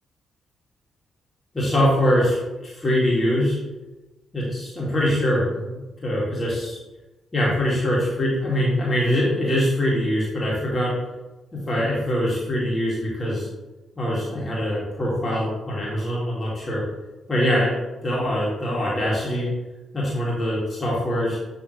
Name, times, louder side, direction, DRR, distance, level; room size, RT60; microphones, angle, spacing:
voice 1, 1.5-3.6 4.3-6.8 7.3-10.9 11.5-13.5 14.0-16.8 17.3-17.8 18.0-19.5 19.9-21.4, equal, 35° left, -6 dB, 2.3 m, -23 dB
9.4 x 3.6 x 3.3 m, 1.1 s
hypercardioid pair, 45°, 0 cm